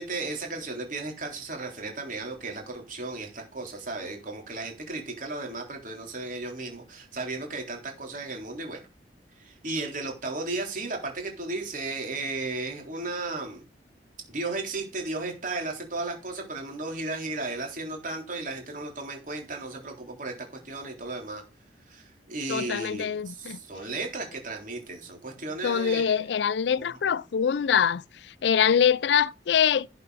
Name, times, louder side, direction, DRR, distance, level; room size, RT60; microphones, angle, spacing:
voice 1, 0.0-8.8 9.4-13.6 14.3-20.3 20.6-21.4 21.9-26.2 26.7-27.2, right 3 dB, 50° right, 3.7 m, -35 dB
voice 2, 22.5-23.6 25.6-28.0 28.4-29.9, left 7 dB, 70° left, 0.4 m, -24 dB
11.5 x 6.6 x 4.1 m
head